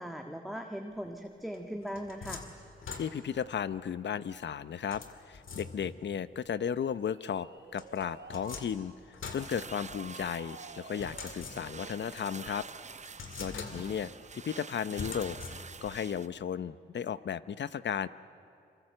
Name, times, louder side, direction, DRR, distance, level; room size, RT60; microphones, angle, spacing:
voice 1, 0.0-2.4 13.5-13.8, equal, ahead, 3 dB, 1.7 m, -40 dB
sound 1, 1.5-3.5 4.9-6.1 7.7-10.3 11.0-12.0 12.5-12.6 13.1-14.1 15.0-16.0, left 5 dB, 80° left, 2.5 m, -44 dB
voice 2, 2.9-12.7 13.4-18.1, left 8 dB, 65° left, 15 dB, 0.7 m, -35 dB
sound 2, 6.8-8.6 10.0-12.0, right 5 dB, 65° right, 3.1 m, -51 dB
sound 3, 9.4-16.3, right 5 dB, 35° right, 0.7 m, -47 dB
26.0 x 24.0 x 7.8 m, 2.5 s
cardioid pair, 60°, 20 cm